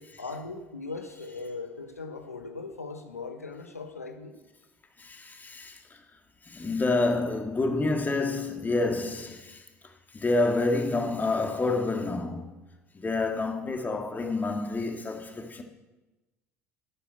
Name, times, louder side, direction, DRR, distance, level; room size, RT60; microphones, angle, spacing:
voice 1, 0.0-4.4, left 3 dB, 90° left, 1.2 m, -39 dB
voice 2, 5.0-12.6 12.9-15.6, left 3 dB, 20° left, 2.4 m, -29 dB
12.0 x 7.9 x 7.6 m
figure-of-eight pair, 65°, 8 cm